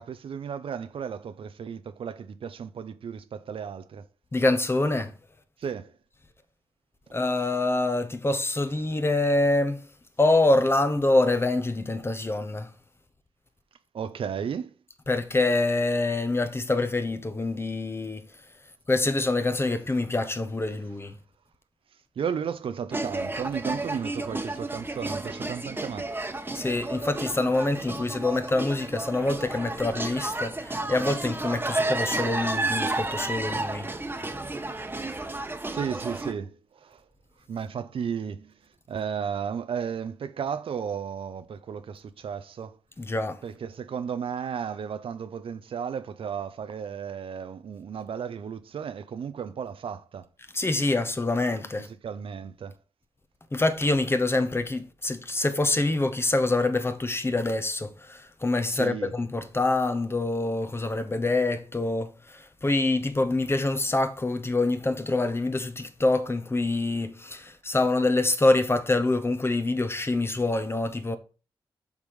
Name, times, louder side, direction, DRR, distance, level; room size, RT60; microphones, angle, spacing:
voice 1, 0.0-4.1 5.6-5.9 13.9-14.7 22.2-26.1 35.0-35.1 35.7-37.0 37.5-38.5 38.9-42.8 43.4-50.3 51.8-52.8 58.7-59.1, right 7 dB, 70° right, 0.7 m, -34 dB
voice 2, 4.3-5.1 7.1-9.8 10.2-12.7 15.1-18.3 18.9-21.2 26.5-33.9 43.0-43.4 50.5-51.9 53.5-71.2, left 2 dB, 25° left, 1.1 m, -25 dB
sound 1, 22.9-36.3, right 2 dB, 20° right, 1.3 m, -32 dB
7.1 x 3.7 x 6.5 m
cardioid pair, 55°, 10 cm